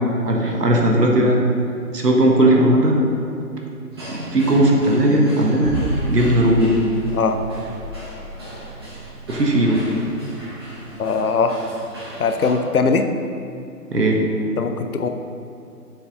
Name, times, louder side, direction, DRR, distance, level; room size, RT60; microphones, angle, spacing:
voice 1, 0.2-1.4 1.9-3.0 4.1-5.7 6.1-6.7 9.3-9.8 13.9-14.2, right 1 dB, 80° right, 0 dB, 1.4 m, -17 dB
sound 1, 3.9-12.5, right 1 dB, 15° right, 1.0 m, -38 dB
sound 2, 5.6-11.8, right 2 dB, 55° right, 1.6 m, -32 dB
voice 2, 11.0-11.6 12.2-13.1 14.6-15.1, left 4 dB, 65° left, 7 dB, 0.6 m, -20 dB
6.9 x 5.0 x 3.7 m, 2.6 s
figure-of-eight pair, 160°, 48 cm